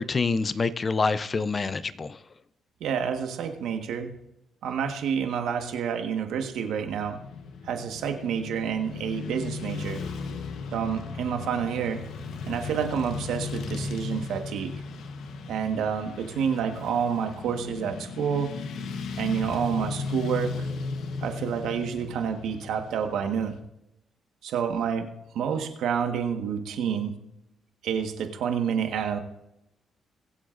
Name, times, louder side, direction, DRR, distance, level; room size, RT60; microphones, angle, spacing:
voice 1, 0.0-2.2, left 4 dB, 35° left, 14 dB, 0.6 m, -26 dB
voice 2, 2.8-4.1 4.6-7.2 7.6-10.0 10.7-12.0 12.5-14.7 15.5-18.5 19.2-20.5 21.2-23.5 24.4-25.1 25.3-27.1 27.8-29.2, right 7 dB, 80° right, 5 dB, 1.5 m, -28 dB
Motorcycle / Traffic noise roadway noise, 7.0-23.6, left 4 dB, 75° left, 1.1 m, -36 dB
23.0 x 7.8 x 2.6 m, 0.85 s
cardioid pair, 90°, 0 cm